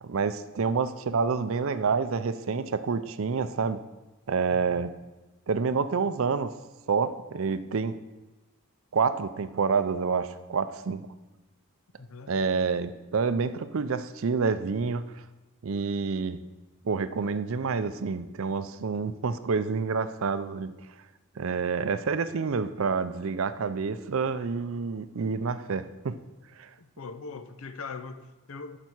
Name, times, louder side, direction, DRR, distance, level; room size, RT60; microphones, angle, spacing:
voice 1, 0.0-3.8 4.3-4.9 5.5-6.5 6.9-8.0 8.9-11.1 12.3-15.0 15.6-16.4 16.8-20.7 21.4-26.2 26.6-26.7, right 5 dB, 70° right, 0.5 m, -28 dB
voice 2, 4.5-4.9 12.0-12.3 26.8-28.8, left 4 dB, 75° left, 0.6 m, -41 dB
10.5 x 6.7 x 4.5 m
head